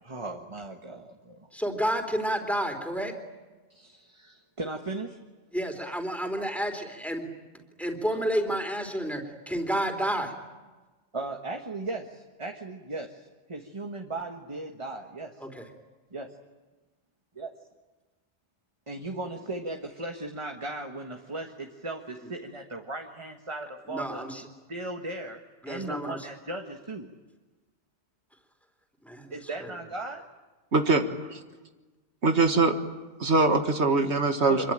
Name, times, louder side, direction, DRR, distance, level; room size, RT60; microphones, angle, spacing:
voice 1, 0.0-1.4 3.7-5.2 11.1-15.4 16.1-16.3 17.3-17.5 18.9-24.4 24.7-25.4 25.6-27.1 29.3-30.2 34.5-34.7, right 2 dB, 25° right, 3 dB, 1.6 m, -37 dB
voice 2, 1.5-3.1 5.5-7.3 7.8-10.3 15.4-15.7 23.9-24.4 25.6-26.2 29.0-29.3 29.6-29.7, equal, ahead, 4 dB, 3.7 m, -30 dB
voice 3, 30.7-31.0 31.3-31.4 32.2-32.7 33.2-34.7, right 3 dB, 75° right, 6 dB, 2.0 m, -22 dB
26.0 x 23.5 x 9.0 m, 1.2 s
omnidirectional pair, 1.1 m